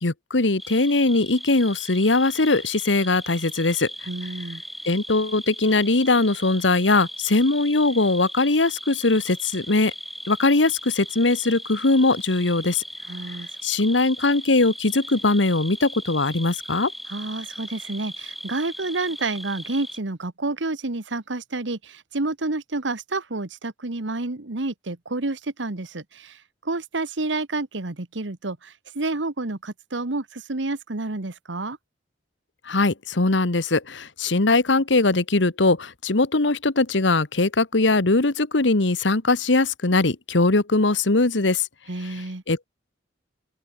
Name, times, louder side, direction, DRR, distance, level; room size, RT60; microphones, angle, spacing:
voice 1, 0.0-3.9 4.9-9.9 10.3-12.8 13.6-16.9 32.7-41.7 42.5-42.6, left 2 dB, 75° left, 1.4 m, -21 dB
sound 1, 0.6-20.0, equal, ahead, 2.7 m, -38 dB
voice 2, 4.1-4.6 13.1-13.5 17.1-31.8 41.9-42.4, right 2 dB, 85° right, 1.4 m, -29 dB
open air
head